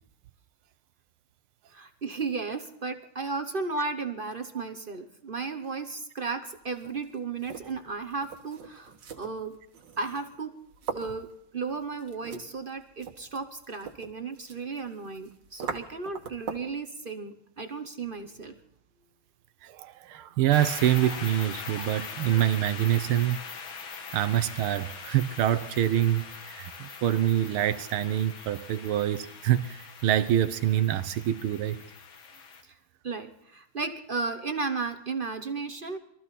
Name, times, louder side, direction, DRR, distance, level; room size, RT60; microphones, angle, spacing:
voice 1, 1.7-9.6 10.0-10.6 10.9-18.6 33.0-36.0, right 4 dB, 40° right, 0.7 m, -34 dB
sound 1, 6.6-16.8, right 6 dB, 60° right, 2.0 m, -43 dB
voice 2, 19.6-23.4 24.1-31.8, right 12 dB, 80° right, 1.7 m, -26 dB
sound 2, 20.5-32.6, left 5 dB, 70° left, 2.2 m, -42 dB
23.5 x 14.0 x 4.1 m
omnidirectional pair, 2.4 m